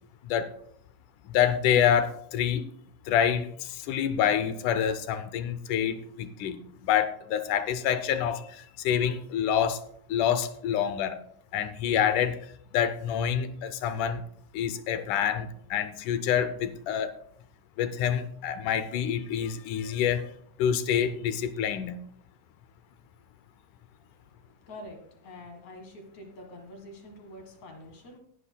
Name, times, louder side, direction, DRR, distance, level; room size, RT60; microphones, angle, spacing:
voice 1, 1.3-2.7 3.1-9.8 10.1-11.2 11.5-12.4 12.7-14.2 14.5-17.1 17.8-20.3 20.6-22.0, left 9 dB, 75° left, 11 dB, 2.0 m, -27 dB
voice 2, 24.1-28.2, left 1 dB, 60° left, 3 dB, 2.8 m, -46 dB
19.0 x 9.8 x 2.3 m, 0.63 s
omnidirectional pair, 3.9 m